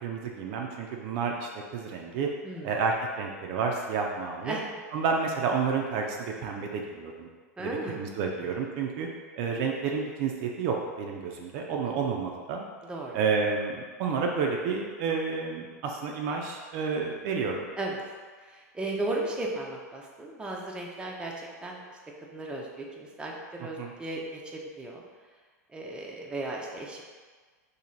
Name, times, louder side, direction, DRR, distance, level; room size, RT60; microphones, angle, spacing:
voice 1, 0.0-2.3 2.6-4.6 4.9-7.3 7.6-9.1 9.4-12.7 13.1-17.7 23.8-23.9, right 5 dB, 50° right, 1 dB, 0.5 m, -30 dB
voice 2, 2.4-2.7 4.4-4.6 7.6-8.0 11.9-12.0 12.9-13.2 17.8-18.0 18.4-21.8 22.3-25.0 25.7-27.0, right 2 dB, 10° right, -2 dB, 0.6 m, -35 dB
3.0 x 2.7 x 3.8 m, 1.5 s
hypercardioid pair, 95°, 9 cm